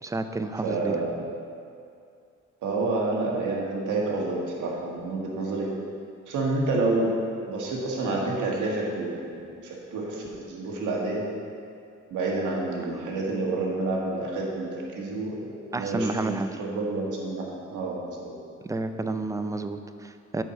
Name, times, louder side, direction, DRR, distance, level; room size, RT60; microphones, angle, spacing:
voice 1, 0.0-1.0 15.7-16.6 18.6-20.4, right 2 dB, 10° right, 9 dB, 0.4 m, -30 dB
voice 2, 0.6-1.2 2.6-5.7 6.3-7.1 7.5-9.1 9.4-11.2 12.1-18.3, right 2 dB, 80° right, -2 dB, 1.7 m, -29 dB
9.0 x 4.6 x 5.8 m, 2.4 s
cardioid pair, 90°, 30 cm